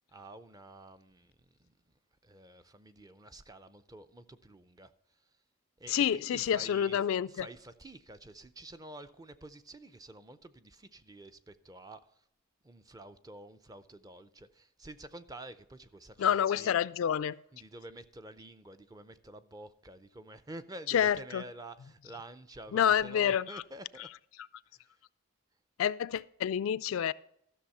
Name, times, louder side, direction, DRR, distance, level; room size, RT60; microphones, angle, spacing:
voice 1, 0.1-5.4 5.8-7.0 7.3-12.3 12.6-16.7 17.5-24.1 24.7-25.0, right 1 dB, 15° right, 0.5 m, -49 dB
voice 2, 5.9-7.5 16.2-17.4 20.9-21.4 22.7-23.6 25.8-27.1, left 9 dB, 65° left, 0.3 m, -28 dB
13.0 x 6.4 x 5.5 m
head